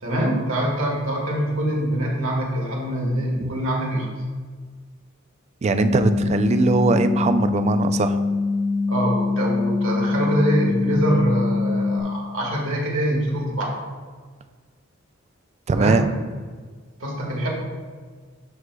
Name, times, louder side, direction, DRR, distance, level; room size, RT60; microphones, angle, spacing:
voice 1, 0.0-4.1 8.9-13.8 15.7-16.1 17.0-17.5, equal, 85° right, -2 dB, 1.5 m, -24 dB
voice 2, 5.6-8.2 15.7-16.0, right 3 dB, 35° right, 10 dB, 0.3 m, -20 dB
sound 1, 5.7-12.0, left 3 dB, 30° left, 0.5 m, -23 dB
11.0 x 4.6 x 2.2 m, 1.5 s
head